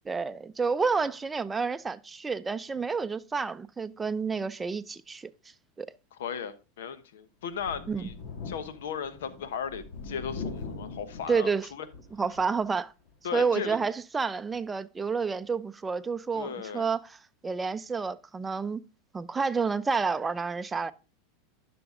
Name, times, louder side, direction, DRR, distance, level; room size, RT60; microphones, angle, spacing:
voice 1, 0.1-5.3 5.8-5.9 7.9-8.1 11.3-11.7 12.2-12.9 13.3-17.0 17.4-18.8 19.1-20.9, right 5 dB, 15° right, 0.5 m, -29 dB
voice 2, 6.1-8.1 8.4-11.9 13.2-13.8 16.3-16.9, left 7 dB, 75° left, 1.0 m, -36 dB
Thunder, 7.5-12.6 13.1-13.2 14.5-14.6, left 4 dB, 60° left, 2.0 m, -41 dB
10.5 x 6.1 x 3.7 m
hypercardioid pair, 100°, 0 cm